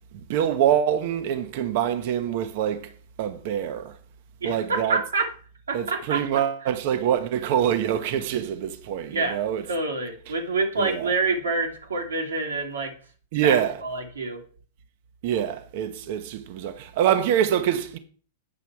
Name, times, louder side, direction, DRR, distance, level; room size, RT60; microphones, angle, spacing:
voice 1, 0.1-2.9 3.2-3.9 4.4-5.0 5.7-9.6 10.8-11.1 13.3-13.8 15.2-18.0, right 10 dB, 60° right, 0.9 m, -25 dB
voice 2, 4.4-5.3 5.7-6.4 9.0-9.4 9.7-12.9 13.4-14.4, right 3 dB, 90° right, 2.1 m, -27 dB
8.8 x 5.9 x 4.6 m
hypercardioid pair, 110°, 0 cm